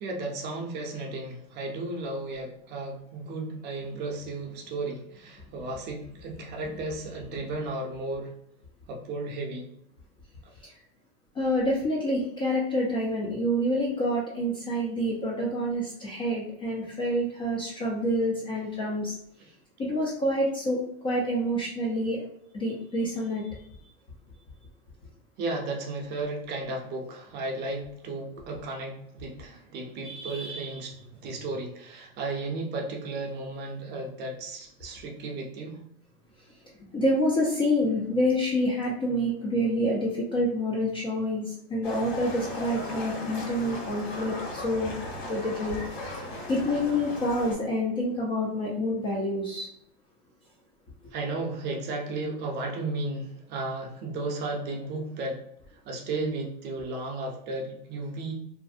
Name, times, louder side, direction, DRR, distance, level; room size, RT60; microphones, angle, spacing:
voice 1, 0.0-8.3 8.9-9.7 19.4-19.5 25.4-30.9 31.2-35.8 51.1-55.4 55.9-58.3, right 2 dB, 35° right, 1 dB, 0.5 m, -34 dB
voice 2, 11.4-19.2 19.8-22.2 22.5-23.5 30.0-30.7 36.9-45.8 46.5-49.7, equal, 15° left, -4 dB, 0.3 m, -27 dB
Livestock farm animals working animals, 41.8-47.5, left 1 dB, 70° left, 1.3 m, -37 dB
2.5 x 2.0 x 2.4 m, 0.71 s
supercardioid pair, 135°, 32 cm